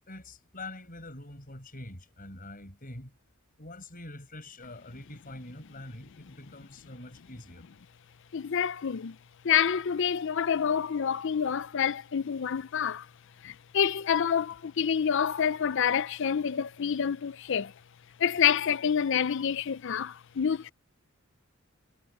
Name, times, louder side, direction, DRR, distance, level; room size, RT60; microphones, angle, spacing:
voice 1, 0.1-3.2 3.6-7.7, left 2 dB, 40° left, 5.5 m, -45 dB
voice 2, 8.3-9.2 9.4-13.1 13.4-17.7 18.2-20.7, left 8 dB, 55° left, 0.5 m, -27 dB
head